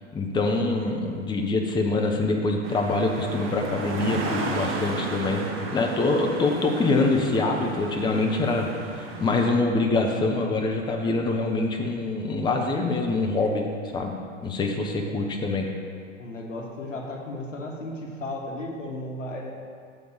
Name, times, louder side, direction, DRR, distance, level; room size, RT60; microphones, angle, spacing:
voice 1, 0.1-5.5 5.7-13.6 13.9-14.1 14.4-15.7, left 3 dB, 10° left, 2 dB, 0.7 m, -25 dB
sound 1, 2.6-9.5, right 3 dB, 35° right, 1.0 m, -34 dB
voice 2, 16.2-19.5, left 1 dB, 80° left, 1 dB, 1.1 m, -34 dB
6.8 x 4.0 x 6.5 m, 2.1 s
figure-of-eight pair, 90°, 37 cm